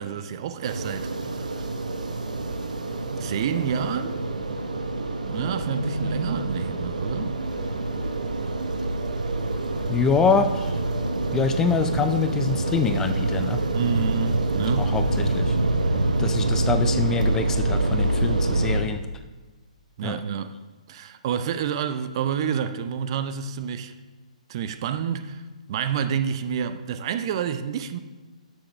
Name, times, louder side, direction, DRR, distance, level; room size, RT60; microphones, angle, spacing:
voice 1, 0.0-1.6 3.2-4.3 5.2-7.4 13.7-14.9 20.0-20.6 20.9-23.9 24.5-25.4 25.7-28.0, right 8 dB, 45° right, 0.5 m, -29 dB
sound 1, 0.6-18.8, right 2 dB, 80° right, 0.9 m, -26 dB
voice 2, 9.9-10.8 11.3-13.6 14.8-15.6 16.2-19.0 20.0-20.2, left 5 dB, 10° left, 0.4 m, -25 dB
12.5 x 6.4 x 3.2 m
figure-of-eight pair, 125°, 4 cm